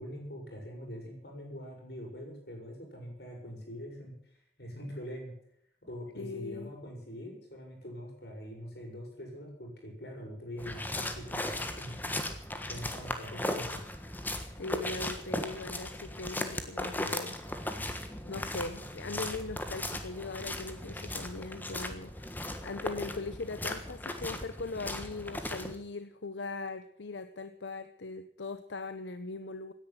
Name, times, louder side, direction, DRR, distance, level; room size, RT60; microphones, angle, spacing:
voice 1, 0.0-5.3 5.8-12.1 12.7-13.8, equal, 65° left, 0 dB, 6.9 m, -43 dB
voice 2, 6.2-6.7 14.6-17.4 18.3-22.3 22.6-29.7, left 3 dB, 90° left, 10 dB, 0.9 m, -40 dB
sound 1, 10.6-25.8, left 1 dB, 10° left, 1.4 m, -37 dB
17.0 x 10.5 x 7.5 m, 0.70 s
head